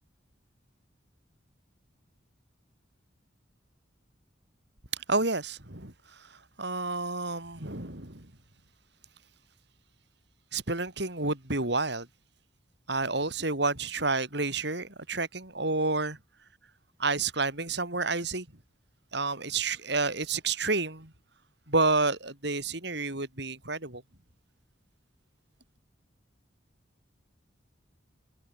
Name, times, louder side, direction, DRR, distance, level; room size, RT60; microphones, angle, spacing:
voice 1, 5.1-5.9 6.6-8.3 10.5-12.1 12.9-16.2 17.0-18.5 19.1-21.1 21.7-24.0, right 3 dB, 60° right, 4.8 m, -29 dB
head